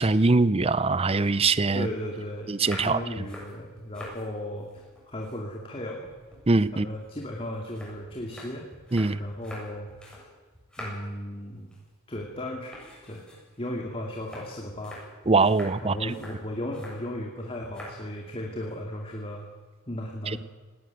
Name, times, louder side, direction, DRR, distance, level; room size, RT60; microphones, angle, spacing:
voice 1, 0.0-1.9 2.5-3.0 6.5-6.9 8.9-9.2 15.3-16.1 20.3-20.4, right 3 dB, 25° right, 16 dB, 0.6 m, -22 dB
voice 2, 1.7-2.5 2.8-6.1 6.7-8.6 9.2-10.3 10.8-11.7 12.1-12.8 13.1-13.2 13.6-15.0 15.8-19.5 19.9-20.4, left 1 dB, 25° left, 0 dB, 2.5 m, -35 dB
sound 1, 2.5-4.2 4.6-5.8 6.0-10.3 10.5-11.2 11.6-11.9 12.1-12.3 12.7-17.0 17.6-18.0 18.3-18.7, left 1 dB, 5° left, 7.9 m, -45 dB
19.0 x 18.5 x 9.3 m, 1.3 s
head